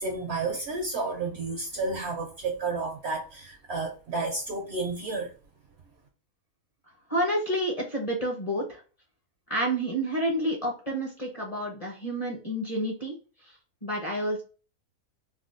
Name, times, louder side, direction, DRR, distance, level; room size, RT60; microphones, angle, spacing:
voice 1, 0.0-5.3, right 3 dB, 65° right, 0.7 m, -31 dB
voice 2, 7.1-8.8 9.5-13.1 13.4-13.5 13.8-14.4, right 1 dB, 35° left, 0.7 m, -29 dB
3.5 x 2.2 x 2.4 m
omnidirectional pair, 1.5 m